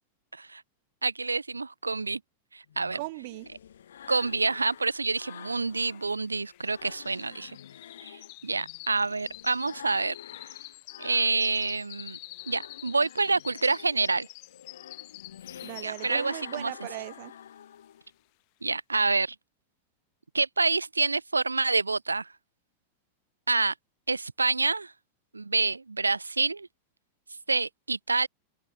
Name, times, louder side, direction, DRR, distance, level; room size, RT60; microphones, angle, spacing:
voice 1, 1.0-2.2 2.5-3.0 4.1-7.6 8.0-10.2 11.0-12.2 12.5-14.3 15.8-16.7 18.6-19.4 20.3-22.3 23.5-23.7 24.1-24.9 25.3-26.7 27.5-28.3, right 3 dB, 80° right, 1.8 m, -27 dB
sound 1, 2.7-6.1 6.5-11.8 12.2-18.1, left 9 dB, 65° left, 7.2 m, -48 dB
voice 2, 2.9-3.5 15.6-17.3, right 23 dB, 50° right, 4.3 m, -38 dB
sound 2, 4.7-4.8 4.9-16.4 16.8-17.1 17.6-17.7, left 40 dB or more, 45° left, 5.8 m, -47 dB
open air
figure-of-eight pair, 90°, 0 cm